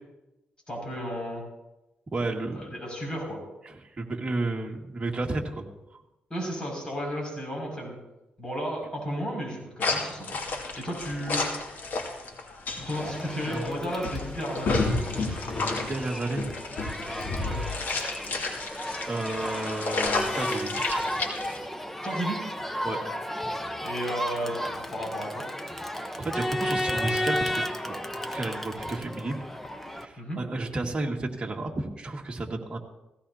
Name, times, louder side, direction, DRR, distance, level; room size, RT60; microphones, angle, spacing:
voice 1, 0.7-1.4 2.5-3.4 6.3-8.0 8.4-10.4 10.7-11.4 12.8-14.8 17.4-17.6 22.0-22.5 23.8-25.4 30.2-30.4, equal, 25° left, -1 dB, 6.3 m, -33 dB
voice 2, 2.1-2.7 3.6-5.6 15.2-15.4 15.7-16.5 17.5-17.7 19.1-21.0 22.8-23.0 26.2-29.5 29.8-32.8, right 2 dB, 30° right, 0 dB, 2.1 m, -32 dB
sound 1, 9.8-21.6, left 3 dB, 65° left, 2.4 m, -31 dB
Crowd, 12.9-30.0, equal, 5° left, 1.0 m, -34 dB
18.0 x 16.0 x 2.9 m, 0.97 s
cardioid pair, 90°, 3 cm